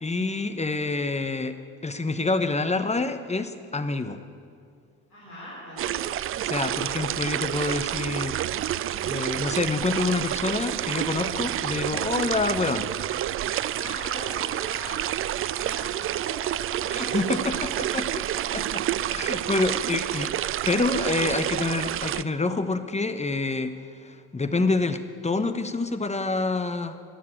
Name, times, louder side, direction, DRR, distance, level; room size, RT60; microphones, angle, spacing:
voice 1, 0.0-1.6 1.8-4.2 6.4-8.4 9.0-12.9 16.9-18.3 18.5-18.8 19.1-20.3 20.7-23.7 24.0-27.0, left 3 dB, 15° left, 10 dB, 1.1 m, -27 dB
voice 2, 5.1-6.0 13.5-17.8, equal, 85° left, -9 dB, 3.9 m, -42 dB
sound 1, 5.8-22.2, right 12 dB, 30° right, 0.4 m, -29 dB
20.5 x 7.4 x 8.6 m, 2.3 s
hypercardioid pair, 55°, 44 cm